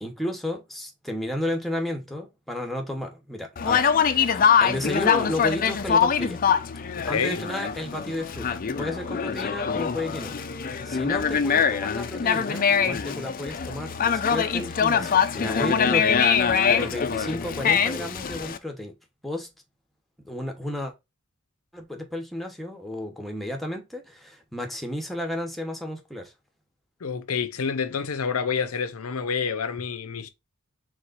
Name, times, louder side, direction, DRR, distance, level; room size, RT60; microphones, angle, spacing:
voice 1, 0.0-6.4 7.1-18.9 19.2-19.5 20.2-20.9 21.7-26.3, left 1 dB, ahead, 1.1 m, -33 dB
Conversation, 3.6-18.6, left 7 dB, 40° left, 0.5 m, -23 dB
voice 2, 7.0-7.5 27.0-30.3, left 6 dB, 80° left, 0.7 m, -28 dB
4.7 x 3.8 x 2.5 m
head